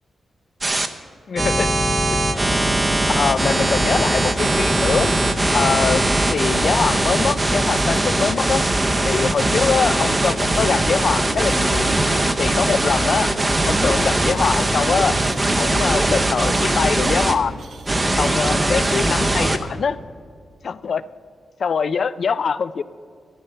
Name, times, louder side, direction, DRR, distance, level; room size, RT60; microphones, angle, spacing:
sound 1, 0.6-0.9 1.4-17.3 17.9-19.6, right 1 dB, 20° right, 0.7 m, -20 dB
voice 1, 1.3-1.7 3.2-5.1 5.5-6.0 6.3-8.6 9.0-11.9 12.4-13.3 13.6-15.2 15.6-17.6 18.2-20.0 20.6-21.0 21.6-22.8, left 6 dB, 50° left, 16 dB, 0.4 m, -23 dB
sound 2, 10.1-19.6, right 5 dB, 65° right, 0.9 m, -37 dB
13.0 x 11.0 x 5.6 m, 2.1 s
wide cardioid pair, 155°, 0 cm